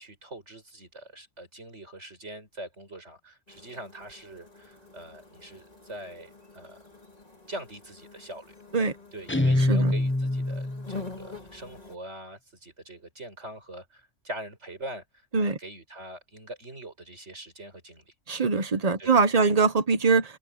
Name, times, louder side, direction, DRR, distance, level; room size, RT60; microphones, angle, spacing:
voice 1, 0.0-6.8 7.5-8.5 9.1-15.0 15.4-18.1 19.0-19.7, right 1 dB, 60° right, 7.2 m, -43 dB
sound 1, 3.5-12.0, left 3 dB, 30° left, 2.5 m, -46 dB
Guitar, 9.3-11.0, left 1 dB, 10° left, 0.9 m, -24 dB
voice 2, 9.6-9.9 15.3-15.6 18.3-20.4, right 4 dB, 30° right, 1.1 m, -23 dB
open air
omnidirectional pair, 1.3 m